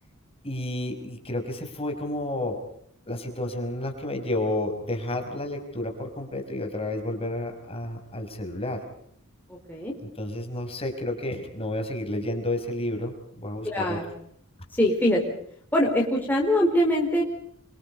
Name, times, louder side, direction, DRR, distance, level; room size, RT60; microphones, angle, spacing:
voice 1, 0.4-2.6 3.1-8.8 10.0-14.0, left 1 dB, 25° left, 4 dB, 5.3 m, -31 dB
voice 2, 9.5-10.0 13.6-14.0 14.8-15.2 15.7-17.2, equal, 10° left, -2 dB, 4.4 m, -23 dB
29.0 x 24.5 x 5.4 m, 0.67 s
head